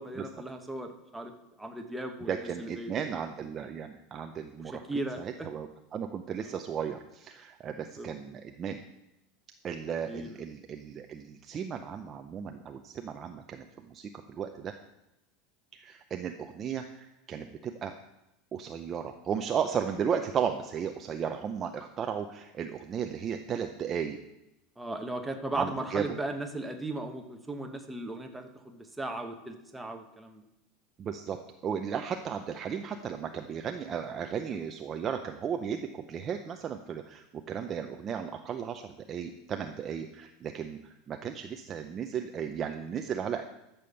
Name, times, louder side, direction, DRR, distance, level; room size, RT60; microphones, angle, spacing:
voice 1, 0.0-1.3 1.6-3.1 4.6-5.5 7.8-8.1 10.0-10.4 24.8-30.4, right 2 dB, 5° right, 3 dB, 1.0 m, -37 dB
voice 2, 2.3-8.8 9.6-14.7 15.7-17.9 18.5-24.2 25.5-26.2 31.0-43.4, right 7 dB, 20° right, 5 dB, 0.5 m, -35 dB
12.0 x 7.0 x 6.9 m, 0.88 s
supercardioid pair, 175°, 0 cm